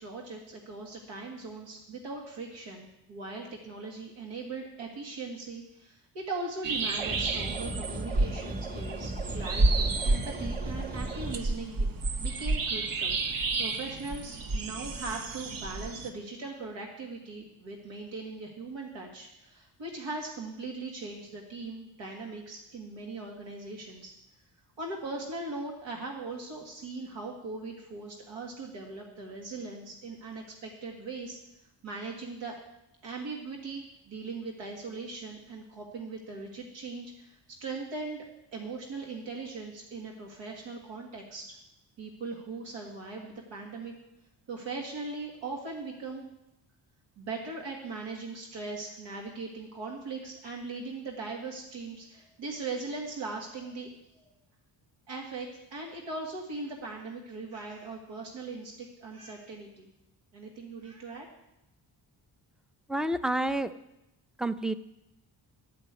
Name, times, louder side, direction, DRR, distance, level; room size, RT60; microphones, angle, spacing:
voice 1, 0.0-11.9 12.2-13.2 13.6-24.1 24.8-31.4 31.8-32.5 33.0-38.2 38.5-41.6 42.0-43.9 44.5-46.3 47.2-54.3 55.1-59.9 60.3-61.3, right 3 dB, 90° right, -1 dB, 1.8 m, -39 dB
sound 1, 6.6-16.1, right 3 dB, 50° right, 0.9 m, -31 dB
sound 2, 7.0-11.4, right 2 dB, 20° right, 1.5 m, -37 dB
voice 2, 62.9-63.7 64.4-64.7, right 1 dB, ahead, 12 dB, 0.4 m, -29 dB
11.0 x 5.2 x 8.0 m, 0.88 s
cardioid pair, 85°, 44 cm